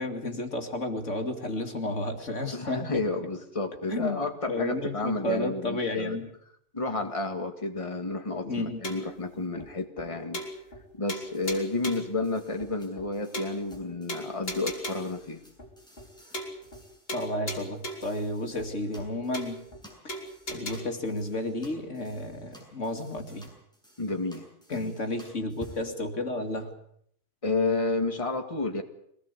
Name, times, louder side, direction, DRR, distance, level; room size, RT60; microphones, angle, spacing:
voice 1, 0.0-3.0 3.9-6.3 8.4-8.9 17.1-19.6 20.5-23.5 24.7-26.7, left 1 dB, 75° left, 5 dB, 2.8 m, -32 dB
voice 2, 2.5-6.2 6.7-10.4 10.9-15.4 24.0-25.0 27.4-28.8, left 3 dB, 25° left, 5 dB, 2.2 m, -31 dB
sound 1, 8.8-9.2 9.6-9.7 10.0-10.1 10.3-10.8 11.1-12.1 12.6-12.7 13.0-13.1 13.3-13.8 14.1-15.2 15.6-15.7 16.0-16.1 16.3-16.8 17.1-18.2 18.6-18.7 19.0-19.1 19.3-19.8 20.1-20.8, equal, 50° left, 4.1 m, -37 dB
sound 2, 11.3-25.9, right 1 dB, 5° left, 7.2 m, -54 dB
23.5 x 18.5 x 8.3 m, 0.70 s
omnidirectional pair, 1.3 m